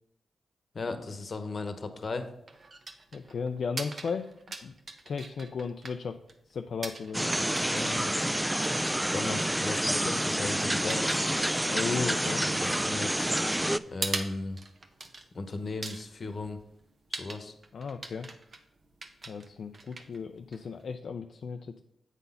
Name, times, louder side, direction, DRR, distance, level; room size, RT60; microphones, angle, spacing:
voice 1, 0.7-2.3 7.3-8.1 9.1-11.2 12.4-13.4 13.8-14.6 15.3-16.6 17.2-17.5, left 3 dB, 55° left, 8 dB, 1.0 m, -36 dB
sound 1, 1.9-20.9, right 3 dB, 50° right, 0.9 m, -43 dB
voice 2, 3.1-4.3 4.6-4.7 5.1-6.2 6.5-7.3 11.6-12.5 17.7-18.3 19.3-21.8, left 5 dB, 70° left, 6 dB, 0.4 m, -35 dB
sound 2, 7.1-13.8, right 1 dB, 10° right, 0.3 m, -28 dB
8.1 x 4.0 x 5.5 m, 0.77 s
cardioid pair, 55°, 0 cm